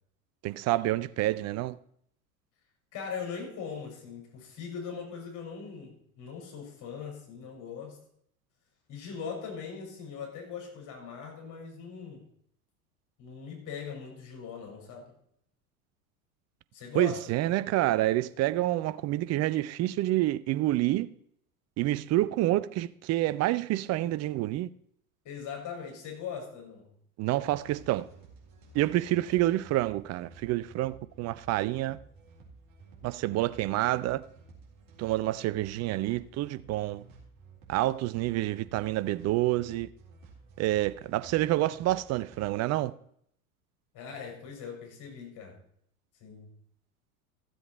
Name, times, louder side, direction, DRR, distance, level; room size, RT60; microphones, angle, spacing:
voice 1, 0.4-1.8 16.9-21.1 21.8-24.7 27.2-28.1 28.7-32.0 33.0-34.2 35.0-37.0 37.7-39.9 40.6-42.9, right 16 dB, 35° right, 0.6 m, -28 dB
voice 2, 2.9-8.0 8.9-12.2 13.2-15.1 16.7-17.2 25.2-26.9 29.3-29.7 43.9-45.5 46.2-46.5, left 6 dB, 45° left, 5.7 m, -40 dB
sound 1, 27.4-42.5, right 4 dB, 55° right, 4.1 m, -54 dB
14.5 x 7.8 x 4.5 m
hypercardioid pair, 80°, 43 cm